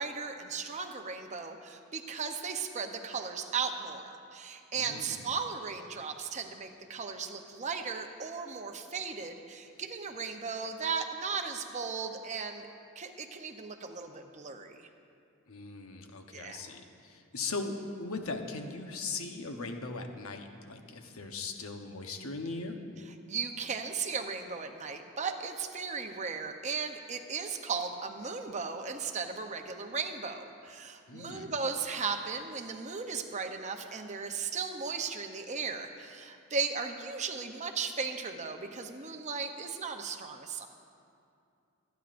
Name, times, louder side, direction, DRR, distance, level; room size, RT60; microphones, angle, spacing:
voice 1, 0.0-12.7 13.0-14.9 16.3-16.6 23.3-40.7, right 5 dB, 35° right, 5 dB, 0.7 m, -36 dB
voice 2, 4.8-5.3 15.5-22.8 31.1-31.5, left 3 dB, 75° left, 4 dB, 1.0 m, -39 dB
24.0 x 9.2 x 2.6 m, 2.5 s
head